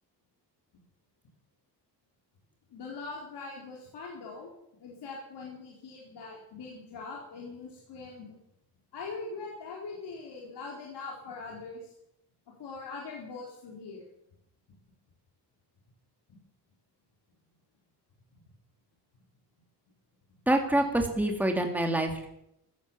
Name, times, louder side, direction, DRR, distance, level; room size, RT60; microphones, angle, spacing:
voice 1, 2.7-4.5 4.8-8.3 8.9-11.9 12.6-14.1 18.3-18.4 20.3-20.4 20.7-20.8, left 4 dB, 75° left, -2 dB, 4.1 m, -42 dB
voice 2, 20.5-22.3, right 1 dB, 5° right, 3 dB, 2.2 m, -26 dB
15.5 x 12.5 x 7.4 m, 0.80 s
cardioid pair, 135°, 41 cm